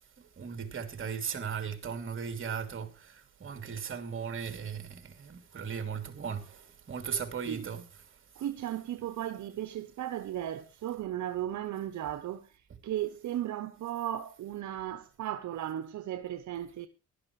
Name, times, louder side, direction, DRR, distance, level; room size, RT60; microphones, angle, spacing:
voice 1, 0.4-6.6 6.9-7.8, right 6 dB, 40° right, 3.0 m, -37 dB
voice 2, 8.4-16.9, right 12 dB, 70° right, 1.1 m, -36 dB
17.0 x 12.0 x 3.2 m
cardioid pair, 90°, 30 cm